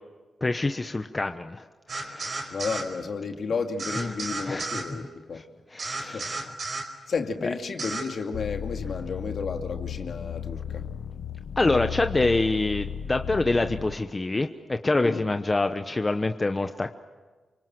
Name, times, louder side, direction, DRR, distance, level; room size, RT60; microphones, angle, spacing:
voice 1, 0.4-2.5 4.4-4.7 5.3-5.4 5.7-6.5 7.4-7.5 11.6-16.9, left 2 dB, 25° left, 7 dB, 1.0 m, -26 dB
sound 1, 1.9-2.9 3.8-4.9 5.8-6.9 7.8-8.1, right 3 dB, 55° right, 4.8 m, -33 dB
voice 2, 2.5-5.0 5.3-5.5 6.0-6.4 7.1-10.9 15.0-15.2, left 5 dB, 65° left, 4 dB, 2.5 m, -32 dB
sound 2, 8.3-14.0, left 8 dB, 85° left, 0.9 m, -35 dB
29.0 x 25.0 x 7.7 m, 1.3 s
cardioid pair, 90°, 0 cm